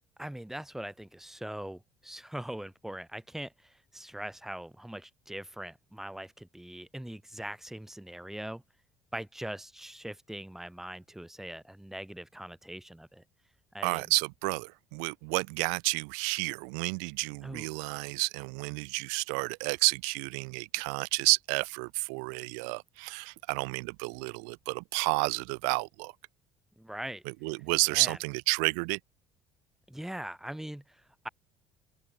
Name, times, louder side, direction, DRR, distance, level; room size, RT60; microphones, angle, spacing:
voice 1, 0.2-8.6 9.1-13.2 13.7-14.1 17.4-17.7 26.8-27.2 27.9-28.2 29.9-31.3, right 1 dB, 5° right, 1.4 m, -41 dB
voice 2, 13.8-26.1 27.3-29.0, right 40 dB or more, 90° right, 0.6 m, -31 dB
open air
supercardioid pair, 90°, 10 cm